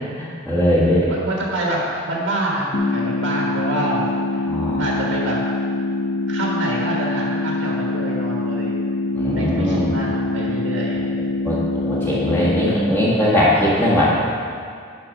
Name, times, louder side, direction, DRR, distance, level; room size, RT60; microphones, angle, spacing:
voice 1, 0.2-1.1 4.5-4.8 9.1-10.0 11.2-14.3, left 1 dB, 10° left, -9 dB, 1.6 m, -20 dB
voice 2, 0.8-4.0 4.3-4.5 4.8-5.4 6.3-8.8 9.1-11.0, right 1 dB, 70° right, -3 dB, 1.4 m, -26 dB
sound 1, 2.7-12.7, left 2 dB, 55° left, 0.8 m, -24 dB
11.0 x 4.4 x 5.3 m, 2.2 s
head